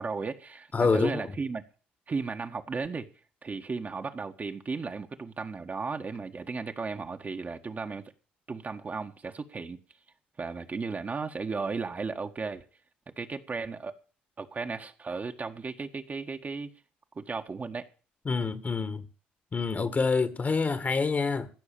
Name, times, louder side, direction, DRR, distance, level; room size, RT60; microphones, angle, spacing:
voice 1, 0.0-1.6 2.1-3.1 3.4-8.1 8.5-9.8 10.4-12.6 13.2-13.9 14.4-16.7 17.1-17.9, right 4 dB, 35° right, 1.6 m, -35 dB
voice 2, 0.7-1.2 18.3-19.1 19.5-21.5, left 4 dB, 35° left, 1.8 m, -27 dB
15.5 x 6.3 x 8.9 m
hypercardioid pair, 55°, 5 cm